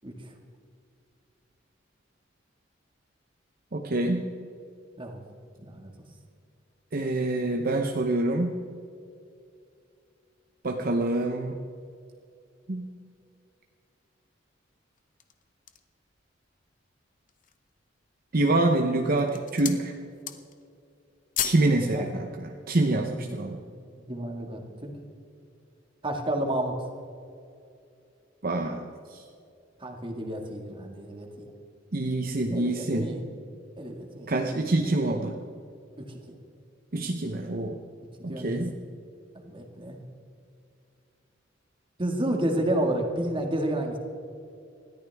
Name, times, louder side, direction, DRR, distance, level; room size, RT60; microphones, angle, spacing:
voice 1, 3.7-4.3 6.9-8.6 10.6-11.6 12.7-12.9 18.3-19.9 21.4-23.6 28.4-29.2 31.9-33.1 34.3-35.4 36.9-37.8 38.2-38.8, right 2 dB, 50° right, 3 dB, 0.8 m, -26 dB
voice 2, 5.6-5.9 21.9-22.0 23.1-23.4 23.9-24.9 26.0-26.8 29.8-31.5 32.5-33.2 33.8-34.3 36.1-36.2 38.3-38.6 39.3-40.0 42.0-44.0, right 1 dB, 25° right, 2 dB, 1.9 m, -30 dB
sound 1, 15.0-16.0 16.6-16.7 17.1-17.7 18.4-18.8 19.1-19.9 20.1-20.7 20.9-21.7 22.0-22.2, left 10 dB, 45° left, 0.8 m, -34 dB
20.0 x 13.5 x 3.5 m, 2.5 s
head